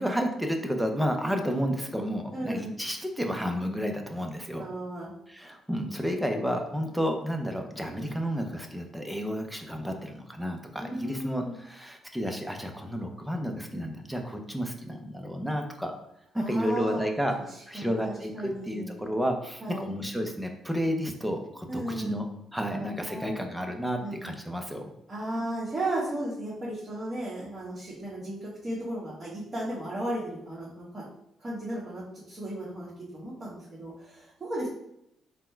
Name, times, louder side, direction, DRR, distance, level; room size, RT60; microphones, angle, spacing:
voice 1, 0.0-4.7 5.3-15.9 16.3-17.4 17.7-22.2 22.5-24.8, equal, 5° right, 3 dB, 0.6 m, -31 dB
voice 2, 2.3-2.7 4.6-5.1 10.8-11.6 16.3-17.1 17.5-19.1 19.6-19.9 21.7-22.2 22.7-23.4 24.0-24.2 25.1-31.1 31.4-34.7, right 1 dB, 25° right, -8 dB, 1.3 m, -35 dB
4.1 x 2.2 x 4.3 m, 0.79 s
cardioid pair, 90°, 0 cm